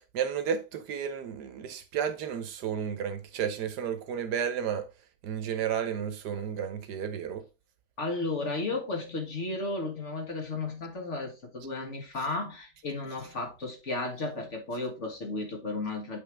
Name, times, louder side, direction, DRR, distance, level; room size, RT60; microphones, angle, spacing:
voice 1, 0.1-4.9 5.2-7.4, right 8 dB, 75° right, 1.4 m, -32 dB
voice 2, 8.0-16.2, left 2 dB, 45° left, 1.8 m, -34 dB
8.1 x 3.9 x 3.3 m
omnidirectional pair, 1.8 m